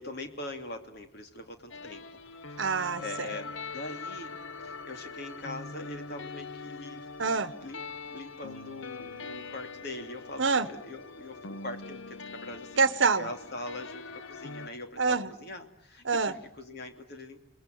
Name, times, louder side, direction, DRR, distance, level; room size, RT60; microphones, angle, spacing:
voice 1, 0.0-2.1 2.5-2.6 3.0-4.3 4.6-7.1 7.6-12.8 13.2-17.4, left 2 dB, 55° left, 6 dB, 2.6 m, -42 dB
sound 1, 1.7-14.7, left 4 dB, 70° left, 1.0 m, -43 dB
voice 2, 2.6-3.3 7.2-7.5 10.4-10.7 12.8-13.3 15.0-15.3 16.0-16.3, right 4 dB, 65° right, 14 dB, 1.1 m, -26 dB
28.5 x 21.0 x 9.3 m, 0.78 s
head